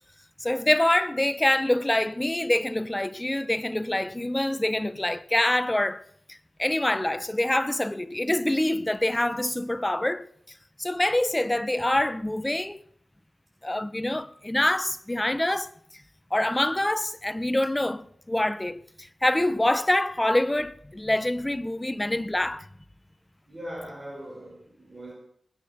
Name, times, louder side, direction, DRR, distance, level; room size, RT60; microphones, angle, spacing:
voice 1, 0.4-6.0 6.3-10.3 10.8-12.8 13.6-15.7 16.3-18.8 19.2-22.6, left 1 dB, 15° left, 0.7 m, -25 dB
voice 2, 23.5-25.2, equal, 25° right, 5.1 m, -40 dB
20.0 x 8.3 x 5.8 m
wide cardioid pair, 105°, 0 cm